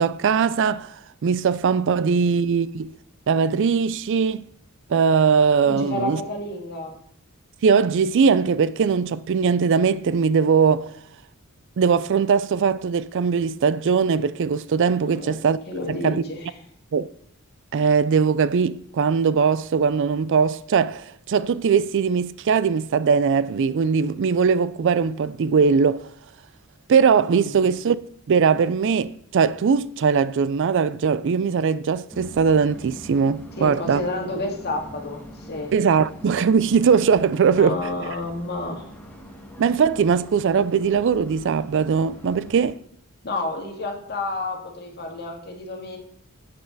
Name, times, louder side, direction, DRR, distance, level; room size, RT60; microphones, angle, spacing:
voice 1, 0.0-2.9 3.3-4.5 4.9-6.2 7.6-10.9 11.8-15.6 15.9-16.2 16.9-17.1 17.7-26.1 26.9-28.0 28.3-34.0 35.7-37.8 39.6-42.8, right 6 dB, 60° right, 0.4 m, -20 dB
voice 2, 5.6-6.9 15.0-15.4 15.7-16.5 27.3-27.6 33.5-35.7 37.5-38.9 43.2-46.0, left 2 dB, 50° left, 2.1 m, -30 dB
sound 1, 32.1-42.6, equal, 10° left, 1.9 m, -43 dB
9.4 x 9.2 x 4.0 m
head